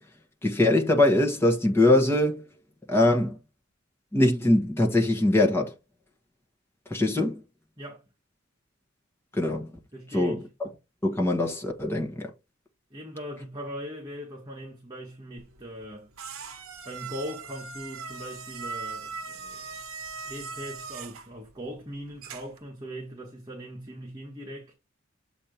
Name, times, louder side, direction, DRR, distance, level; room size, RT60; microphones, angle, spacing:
voice 1, 0.4-2.4 2.9-3.4 4.1-5.7 6.9-7.4 9.3-9.7 10.1-10.7 11.0-12.3, left 1 dB, 10° left, 1.5 m, -22 dB
voice 2, 9.9-10.5 12.9-16.1 16.8-19.8 20.2-24.7, equal, 20° right, 1.5 m, -40 dB
sound 1, 15.4-22.7, right 5 dB, 85° right, 1.0 m, -40 dB
7.6 x 3.0 x 5.1 m
head